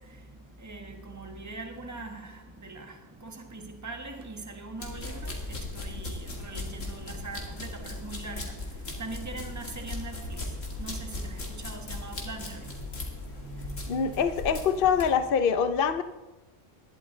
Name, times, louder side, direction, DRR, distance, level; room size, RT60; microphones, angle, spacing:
voice 1, 0.6-2.3 2.6-2.9 3.2-5.3 5.7-8.4 9.0-10.4 10.8-11.4 11.6-12.8 13.4-14.3, right 3 dB, 15° right, 1.4 m, -41 dB
sound 1, 4.8-15.1, left 2 dB, 85° left, 2.6 m, -38 dB
voice 2, 13.9-16.0, left 7 dB, 50° left, 0.9 m, -24 dB
20.0 x 12.0 x 3.9 m
omnidirectional pair, 1.3 m